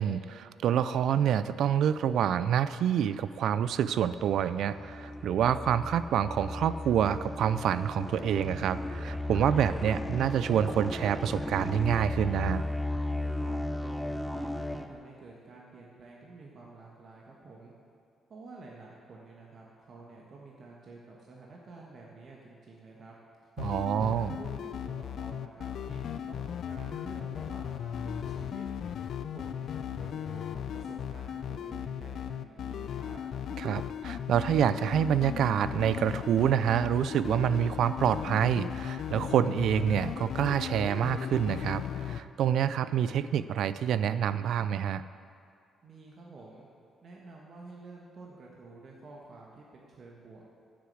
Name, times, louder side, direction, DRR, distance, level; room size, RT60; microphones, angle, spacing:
voice 1, 0.0-12.6 23.6-24.4 33.6-45.0, right 9 dB, 75° right, 14 dB, 0.4 m, -27 dB
sound 1, 3.5-14.9, left 1 dB, 5° left, 0.7 m, -35 dB
voice 2, 13.3-17.7 18.3-23.2 23.8-28.6 29.3-33.2 45.8-46.7 47.0-50.5, right 3 dB, 50° right, -3 dB, 1.6 m, -49 dB
sound 2, 23.6-42.2, left 9 dB, 65° left, 0.4 m, -37 dB
9.6 x 6.9 x 7.8 m, 2.4 s
cardioid pair, 90°, 0 cm